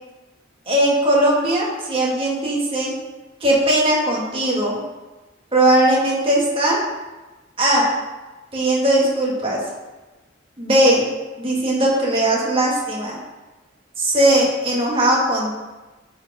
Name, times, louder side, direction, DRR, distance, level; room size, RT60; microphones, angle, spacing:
voice 1, 0.7-2.9 3.4-4.8 5.5-6.8 7.6-7.9 8.5-9.6 10.6-11.0 11.4-13.2 14.0-15.5, right 1 dB, 30° right, -4 dB, 1.9 m, -18 dB
9.7 x 5.0 x 3.6 m, 1.1 s
head